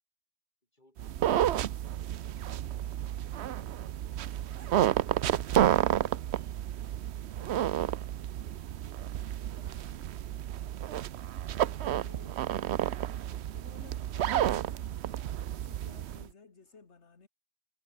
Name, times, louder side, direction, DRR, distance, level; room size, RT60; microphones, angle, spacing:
voice 1, 0.7-1.6 2.2-3.2 8.3-8.8 16.7-16.8, left 1 dB, 35° left, 7.6 m, -66 dB
sound 1, 1.0-16.2, right 11 dB, 60° right, 0.8 m, -31 dB
voice 2, 4.4-5.1 9.5-10.0 11.9-12.7 13.5-15.0 15.5-17.3, left 4 dB, 55° left, 2.4 m, -57 dB
omnidirectional pair, 1.4 m